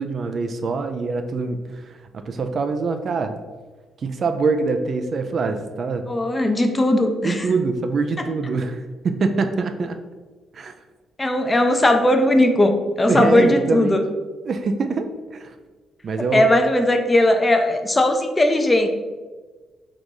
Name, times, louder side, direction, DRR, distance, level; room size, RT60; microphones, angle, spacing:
voice 1, 0.0-1.9 2.3-3.4 4.0-6.1 7.2-10.0 10.5-10.7 13.1-14.0 14.5-15.5 16.0-16.5, right 4 dB, 50° right, 7 dB, 0.4 m, -24 dB
voice 2, 6.1-7.5 11.2-14.0 16.3-18.9, left 1 dB, 20° left, 5 dB, 0.5 m, -18 dB
3.7 x 2.6 x 4.7 m, 1.3 s
cardioid pair, 90°, 0 cm